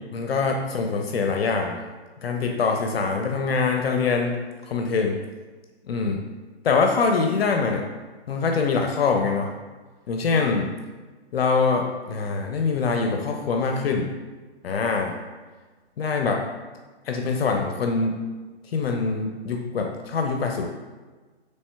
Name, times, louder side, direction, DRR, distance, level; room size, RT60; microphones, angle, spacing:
voice 1, 0.1-1.8 2.2-4.4 4.6-5.2 5.9-6.3 6.6-7.8 8.3-9.5 10.1-10.7 11.3-14.1 14.6-15.2 16.0-16.4 17.1-18.2 18.7-20.7, left 4 dB, 60° left, 2 dB, 0.5 m, -24 dB
4.2 x 3.1 x 2.2 m, 1.3 s
hypercardioid pair, 135°, 34 cm